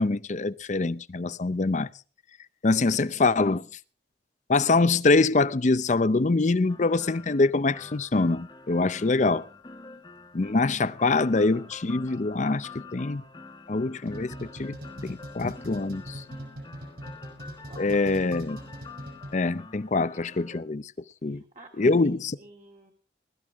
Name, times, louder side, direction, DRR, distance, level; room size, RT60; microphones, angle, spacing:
voice 1, 0.0-1.9 2.6-3.7 4.5-9.5 10.3-13.2 13.7-14.8 15.0-16.2 17.8-18.6 19.3-20.8 21.2-21.4 21.8-22.4, left 3 dB, 45° left, 0.6 m, -24 dB
sound 1, 6.7-20.6, left 3 dB, 25° left, 1.3 m, -47 dB
sound 2, 14.1-19.6, equal, 60° right, 5.8 m, -41 dB
voice 2, 21.2-22.9, right 2 dB, 40° right, 2.0 m, -51 dB
21.0 x 13.0 x 3.6 m
head